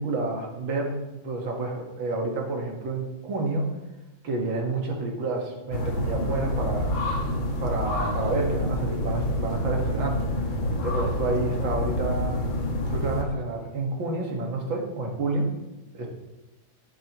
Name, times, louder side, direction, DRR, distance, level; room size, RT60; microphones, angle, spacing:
voice 1, 0.0-3.7 4.2-6.9 7.6-10.3 10.8-12.4 12.9-15.5 15.9-16.1, right 2 dB, 70° right, 0 dB, 2.5 m, -29 dB
sound 1, 5.7-13.2, left 1 dB, 75° left, 2.1 m, -27 dB
14.0 x 8.9 x 3.1 m, 1.0 s
omnidirectional pair, 2.2 m